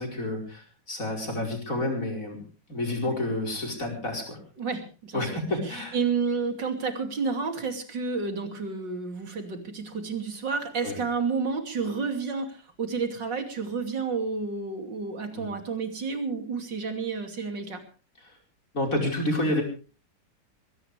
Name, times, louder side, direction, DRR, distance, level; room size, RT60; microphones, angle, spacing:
voice 1, 0.0-2.4 2.7-4.4 5.1-6.0 10.8-11.0 15.3-15.5 18.7-19.6, left 1 dB, 45° left, 1 dB, 5.5 m, -29 dB
voice 2, 4.6-5.3 5.6-17.8, right 5 dB, 70° right, 5 dB, 3.4 m, -30 dB
21.0 x 17.5 x 3.4 m, 0.37 s
omnidirectional pair, 2.0 m